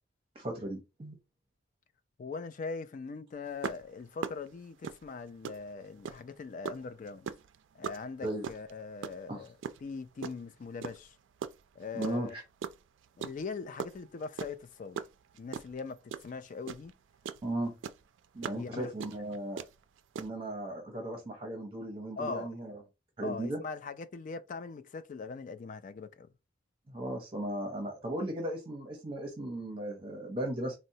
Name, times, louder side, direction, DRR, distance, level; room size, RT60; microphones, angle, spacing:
voice 1, 0.3-1.2 8.2-8.5 9.3-9.4 11.9-12.4 17.4-17.8 18.3-19.6 20.2-22.8 23.2-23.6 26.9-30.8, right 1 dB, 30° right, 0.7 m, -36 dB
voice 2, 2.2-7.3 7.8-9.5 9.8-11.2 11.8-12.3 13.2-15.0 15.4-16.9 18.5-18.9 22.2-22.5 23.2-26.3, left 4 dB, 45° left, 0.3 m, -41 dB
sound 1, 3.6-6.3 6.6-10.4 10.8-12.3 12.6-17.5 17.8-20.3, right 6 dB, 80° right, 0.3 m, -39 dB
4.0 x 2.0 x 2.7 m
head